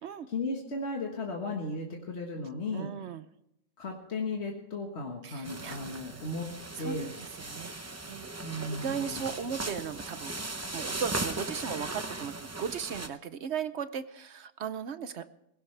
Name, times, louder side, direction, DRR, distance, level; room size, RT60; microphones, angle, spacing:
voice 1, 0.3-2.9 3.8-6.5 6.8-7.1 8.4-9.2, left 2 dB, 45° left, 0 dB, 1.8 m, -35 dB
voice 2, 2.7-3.2 5.2-6.2 6.8-7.8 8.1-8.3 8.7-10.4 10.7-15.3, right 7 dB, 55° right, 12 dB, 0.9 m, -37 dB
sound 1, 5.4-13.1, right 2 dB, 20° right, 0.4 m, -38 dB
20.5 x 16.5 x 3.3 m, 0.80 s
omnidirectional pair, 1.6 m